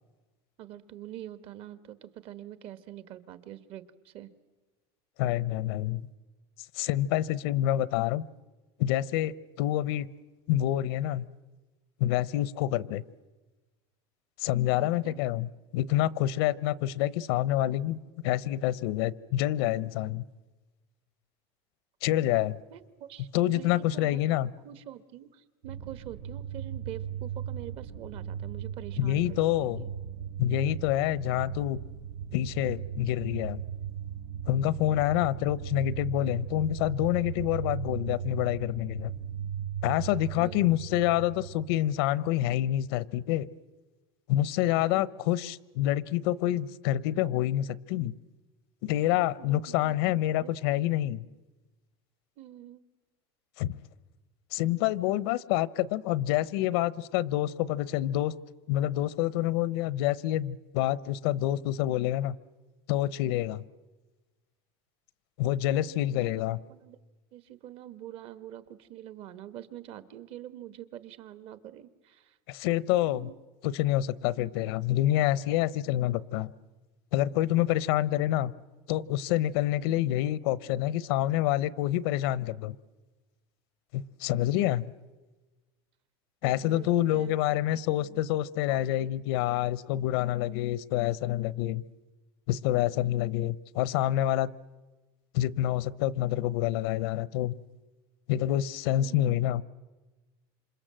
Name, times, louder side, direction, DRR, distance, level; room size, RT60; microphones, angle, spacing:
voice 1, 0.6-4.3 14.8-15.2 22.7-23.3 23.5-24.2 24.6-29.9 40.4-40.7 49.4-50.5 52.4-52.9 66.1-67.0 67.3-72.4 73.0-73.4 86.4-87.6 88.0-88.2 88.7-89.1 98.9-99.3, right 12 dB, 45° right, 13 dB, 1.4 m, -45 dB
voice 2, 5.2-6.0 6.7-8.2 8.8-10.1 10.5-11.3 12.0-13.0 14.4-18.0 18.2-20.2 22.0-22.6 23.3-24.5 29.0-29.8 30.4-31.8 32.3-33.6 34.5-39.1 39.8-43.5 44.3-48.1 48.8-51.2 53.6-53.8 54.5-58.3 58.7-62.4 62.9-63.6 65.4-66.6 72.5-73.3 73.6-76.5 77.1-78.5 78.9-82.8 83.9-84.8 86.4-91.8 92.5-94.5 95.3-97.5 98.3-99.6, left 13 dB, 75° left, 19 dB, 0.9 m, -27 dB
sound 1, 25.6-42.5, right 9 dB, 70° right, 1.0 m, -38 dB
28.0 x 26.5 x 7.7 m, 1.2 s
supercardioid pair, 150°, 13 cm